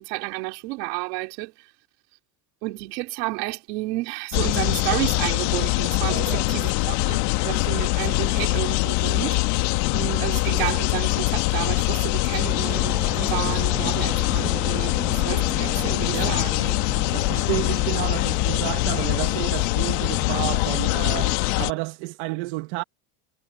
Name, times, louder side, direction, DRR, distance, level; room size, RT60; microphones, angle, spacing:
voice 1, 0.0-1.5 2.6-9.4 9.9-14.9 15.2-16.8, right 24 dB, 85° right, 3.3 m, -31 dB
sound 1, 4.3-21.7, left 23 dB, 85° left, 1.7 m, -23 dB
voice 2, 6.1-6.5 16.1-16.4 17.1-22.8, right 22 dB, 70° right, 1.1 m, -31 dB
sound 2, 12.4-20.8, right 3 dB, 5° right, 0.3 m, -37 dB
cardioid pair, 155°, 47 cm